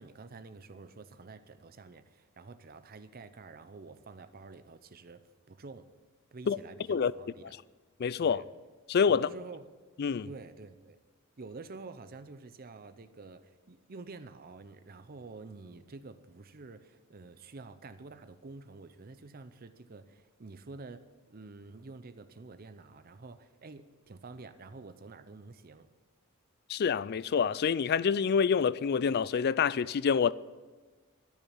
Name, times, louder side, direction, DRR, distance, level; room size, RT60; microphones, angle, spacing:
voice 1, 0.0-5.9 6.3-7.6 8.2-8.5 9.1-9.7 10.2-11.0 11.4-25.9, right 3 dB, 45° right, 0.6 m, -48 dB
voice 2, 8.0-8.4 8.9-9.3 10.0-10.3 26.7-30.3, left 6 dB, 50° left, 0.3 m, -27 dB
12.5 x 7.0 x 9.9 m
head